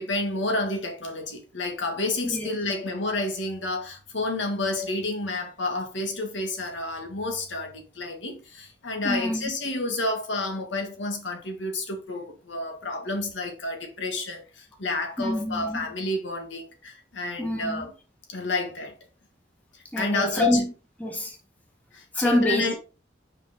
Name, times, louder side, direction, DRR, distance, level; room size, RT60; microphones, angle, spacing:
voice 1, 0.0-17.9 18.3-18.9 19.7-20.6 21.9-22.7, left 2 dB, 75° left, 1.7 m, -30 dB
voice 2, 9.0-9.5 15.2-15.8 17.4-17.8 19.9-20.7 21.0-21.4 22.1-22.7, left 1 dB, 10° left, 1.4 m, -26 dB
5.5 x 5.3 x 3.6 m
head